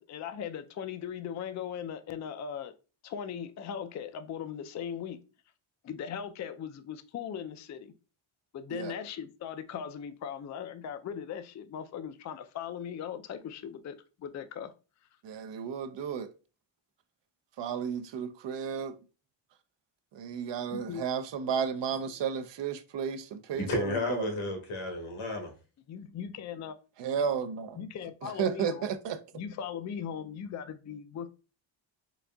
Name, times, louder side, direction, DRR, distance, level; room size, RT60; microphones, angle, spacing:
voice 1, 0.0-2.7 3.0-5.2 5.8-7.9 8.5-14.7 20.7-21.0 25.9-26.7 27.8-28.9 29.3-31.3, left 8 dB, 40° left, 0.4 m, -39 dB
voice 2, 15.2-16.3 17.6-19.0 20.1-24.3 27.0-27.8 28.2-29.2, right 7 dB, 60° right, 0.6 m, -33 dB
voice 3, 23.5-25.5, left 2 dB, 85° left, 1.4 m, -32 dB
3.9 x 3.5 x 2.2 m
cardioid pair, 95°, 49 cm